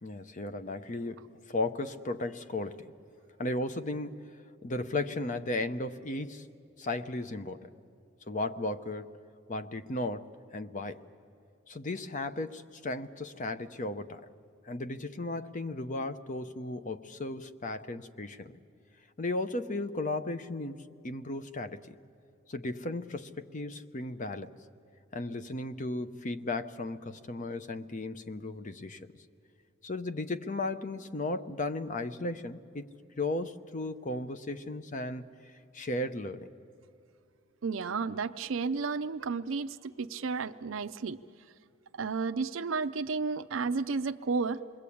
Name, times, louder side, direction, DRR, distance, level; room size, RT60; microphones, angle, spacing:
voice 1, 0.0-2.9 3.4-4.2 4.6-6.5 6.8-7.7 8.3-9.2 9.5-11.1 11.7-14.2 14.6-18.6 19.2-22.0 22.5-24.6 25.1-29.1 29.8-35.3 35.7-36.5, left 2 dB, 40° left, 11 dB, 0.8 m, -35 dB
voice 2, 37.6-41.2 42.0-44.6, right 4 dB, 70° right, 9 dB, 0.5 m, -32 dB
27.5 x 21.0 x 8.5 m, 2.6 s
head